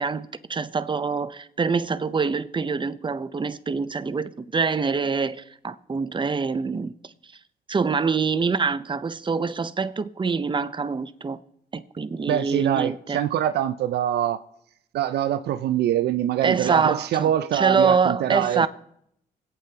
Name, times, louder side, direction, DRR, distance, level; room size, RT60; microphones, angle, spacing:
voice 1, 0.0-6.9 7.7-11.4 11.7-13.2 16.4-18.7, right 5 dB, 30° right, 0.7 m, -25 dB
voice 2, 12.3-14.4 14.9-18.7, right 11 dB, 80° right, 0.5 m, -24 dB
23.0 x 8.5 x 2.9 m
supercardioid pair, 60°, 17 cm